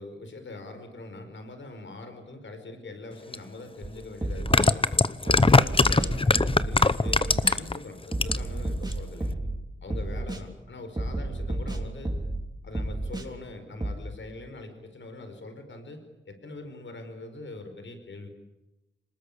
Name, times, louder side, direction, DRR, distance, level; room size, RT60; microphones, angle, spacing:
voice 1, 0.0-5.0 5.2-9.4 9.8-12.1 12.6-18.3, left 2 dB, 70° left, 7 dB, 4.9 m, -42 dB
sound 1, 3.3-3.4 4.3-7.8 8.1-8.6 8.9-9.0, left 3 dB, 25° left, 0.9 m, -20 dB
sound 2, 3.8-3.9 4.2-4.7 5.3-6.7 7.1-7.6 8.1-9.6 9.9-10.4 11.0-12.4 12.7-13.3 13.8-13.9, right 1 dB, 20° right, 3.5 m, -31 dB
26.0 x 20.0 x 8.7 m, 1.0 s
wide cardioid pair, 85°, 20 cm